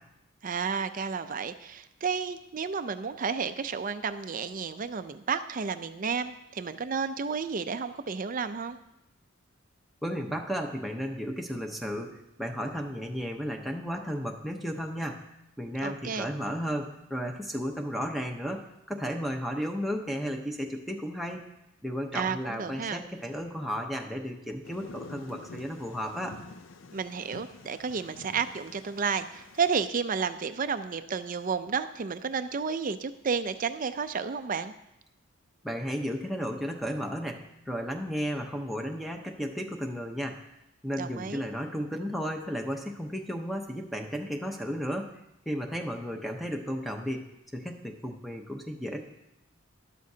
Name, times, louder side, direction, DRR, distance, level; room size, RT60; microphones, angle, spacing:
voice 1, 0.4-8.8 15.8-16.3 22.1-23.0 26.9-34.7 41.0-41.5, right 5 dB, 40° right, 11 dB, 0.5 m, -32 dB
voice 2, 10.0-15.2 15.6-18.6 18.9-21.5 21.8-26.4 35.6-40.4 40.8-45.1 45.5-47.2 47.5-49.0, equal, ahead, 1 dB, 0.8 m, -34 dB
Thunder, 24.6-29.9, left 3 dB, 65° left, 0.6 m, -48 dB
12.5 x 11.5 x 2.8 m, 0.86 s
head